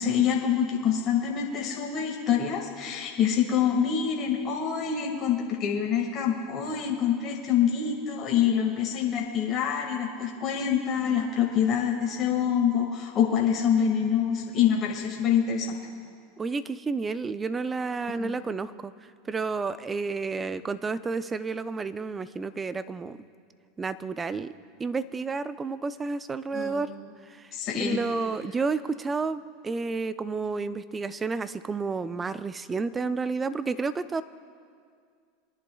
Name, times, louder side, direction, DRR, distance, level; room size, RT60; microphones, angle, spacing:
voice 1, 0.0-15.7 18.1-18.3 26.5-26.9 27.5-28.0, left 8 dB, 45° left, 0 dB, 1.8 m, -26 dB
voice 2, 16.4-18.9 19.3-23.2 23.8-24.5 24.8-26.9 27.3-34.2, right 4 dB, 20° right, 14 dB, 0.5 m, -31 dB
24.0 x 10.5 x 2.3 m, 2.2 s
hypercardioid pair, 95°, 0 cm